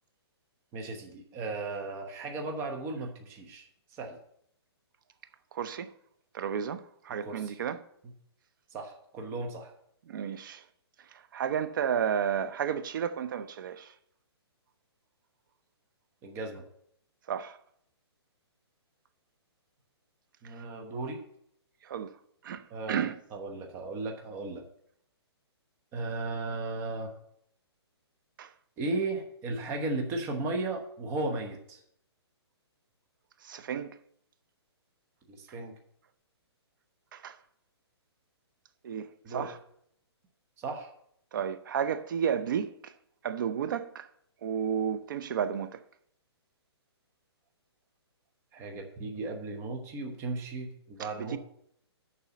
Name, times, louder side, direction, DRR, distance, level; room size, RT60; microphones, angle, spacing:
voice 1, 0.7-3.6 4.0-4.2 7.1-7.6 8.7-9.7 16.2-16.6 20.4-21.2 22.7-24.6 25.9-27.1 28.8-31.8 35.3-35.7 39.2-39.5 40.6-40.9 48.5-51.4, right 3 dB, 15° right, 0.9 m, -35 dB
voice 2, 5.5-5.9 6.3-7.8 10.1-10.6 11.1-13.9 17.3-17.6 21.8-22.1 22.4-23.2 28.4-28.5 33.4-33.9 37.1-37.4 38.8-39.6 41.3-42.9 43.2-44.1 44.4-45.8 51.2-51.4, right 8 dB, 50° right, 0.7 m, -32 dB
6.9 x 5.4 x 7.1 m
hypercardioid pair, 160°, 14 cm